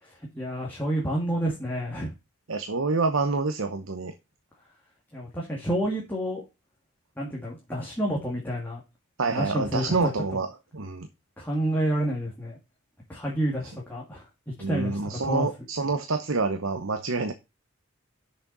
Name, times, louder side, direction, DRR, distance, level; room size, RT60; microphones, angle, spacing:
voice 1, 0.0-2.1 5.1-6.4 7.2-8.8 9.3-10.1 11.4-12.6 13.1-14.2 14.7-15.5, right 1 dB, 10° left, 1.9 m, -29 dB
voice 2, 2.5-4.1 9.2-10.5 10.7-11.1 14.6-17.3, right 3 dB, 75° right, 0.9 m, -27 dB
6.7 x 6.1 x 5.4 m
head